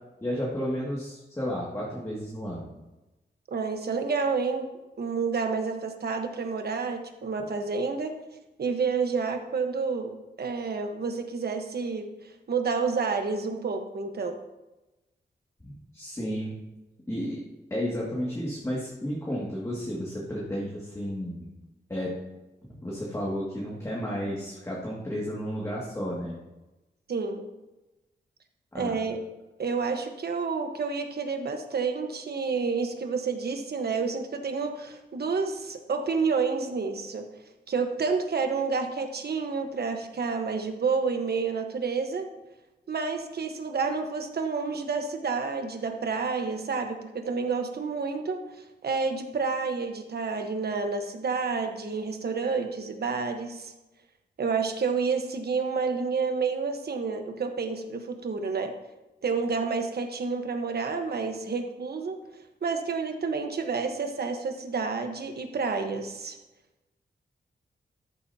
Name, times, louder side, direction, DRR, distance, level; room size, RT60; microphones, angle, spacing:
voice 1, 0.2-2.7 15.6-16.6 17.1-17.4 17.7-21.5 21.9-22.1 22.7-26.4 28.7-28.9, equal, 15° left, -6 dB, 2.2 m, -32 dB
voice 2, 3.5-4.7 5.0-8.1 8.6-10.1 10.4-12.1 12.5-14.4 27.1-27.5 28.7-29.2 29.6-37.3 37.7-42.2 42.9-48.4 48.8-53.7 54.4-58.7 59.2-62.1 62.6-66.4, right 4 dB, 60° right, 5 dB, 1.3 m, -29 dB
13.5 x 11.5 x 2.9 m, 1.1 s
wide cardioid pair, 125°, 18 cm